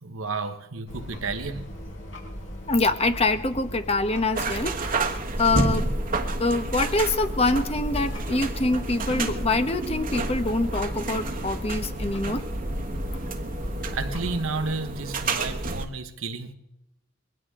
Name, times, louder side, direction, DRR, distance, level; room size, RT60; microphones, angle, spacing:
voice 1, 0.0-1.7 13.9-16.5, right 3 dB, 80° right, 1.2 m, -32 dB
sound 1, 0.9-14.4, equal, 70° left, 5.6 m, -36 dB
voice 2, 2.7-5.1 5.4-5.9 6.4-12.5, left 2 dB, 30° left, 1.1 m, -25 dB
sound 2, 4.4-15.9, right 2 dB, 40° right, 1.3 m, -30 dB
22.0 x 16.5 x 3.7 m
head